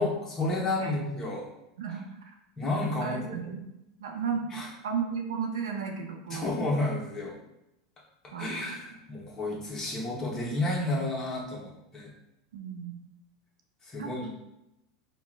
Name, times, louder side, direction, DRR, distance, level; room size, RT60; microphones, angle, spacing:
voice 1, 0.0-1.5 2.6-3.5 4.5-4.7 6.3-7.4 8.4-12.1 13.8-14.3, left 2 dB, 25° left, -3 dB, 1.0 m, -31 dB
voice 2, 3.0-3.6 4.0-4.5 4.8-6.5 8.3-8.8 12.5-13.0 14.0-14.1, right 6 dB, 80° right, 2 dB, 0.5 m, -34 dB
4.3 x 2.0 x 2.4 m, 0.88 s
hypercardioid pair, 95°, 2 cm